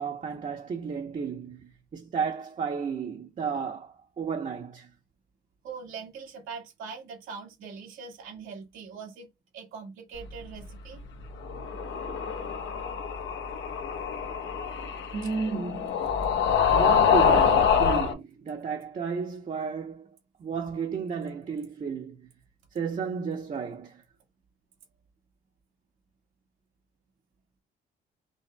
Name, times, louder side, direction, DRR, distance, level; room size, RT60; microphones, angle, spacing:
voice 1, 0.0-4.9 15.1-16.0 16.7-22.3 22.7-24.0, right 6 dB, 40° right, 0.9 m, -33 dB
voice 2, 5.6-9.3 9.5-11.0 15.2-15.3, right 5 dB, 90° right, 1.9 m, -42 dB
sound 1, 11.4-18.1, left 7 dB, 70° left, 1.1 m, -25 dB
5.4 x 3.8 x 2.3 m
cardioid pair, 90°, 20 cm